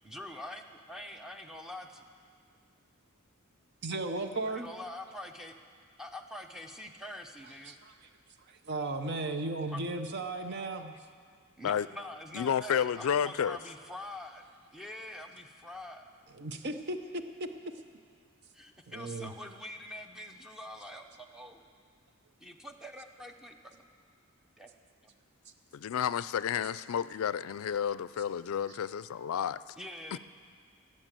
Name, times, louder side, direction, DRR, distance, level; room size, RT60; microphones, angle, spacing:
voice 1, 0.0-0.6 0.9-2.1 4.5-5.6 6.0-7.8 9.7-9.8 11.6-14.4 14.7-16.0 18.5-21.6 22.4-23.8 24.6-24.7 25.0-25.1 29.8-30.2, left 1 dB, 5° right, 0.7 m, -45 dB
voice 2, 3.8-4.7 7.7-7.9 8.7-11.0 16.4-17.0 17.4-17.5 18.9-19.3, right 2 dB, 55° right, 0.8 m, -35 dB
voice 3, 12.3-13.6 25.7-29.6 30.1-30.2, left 8 dB, 75° left, 0.4 m, -31 dB
16.5 x 7.8 x 7.5 m
head